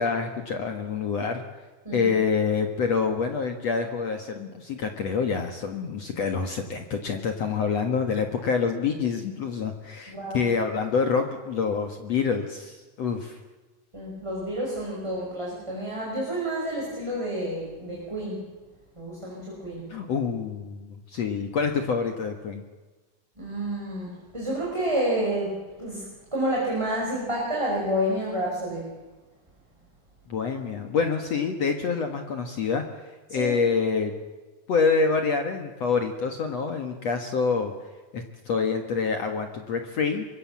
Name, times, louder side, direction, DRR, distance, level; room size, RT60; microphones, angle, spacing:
voice 1, 0.0-1.4 1.9-13.4 19.9-22.6 30.3-34.1 34.7-37.7 38.1-40.3, left 5 dB, 55° left, 5 dB, 2.0 m, -27 dB
voice 2, 10.1-10.4 13.9-18.4 18.9-19.9 23.4-28.9 33.3-33.6, right 1 dB, 5° right, -4 dB, 5.0 m, -29 dB
25.0 x 22.0 x 7.4 m, 1.2 s
omnidirectional pair, 4.7 m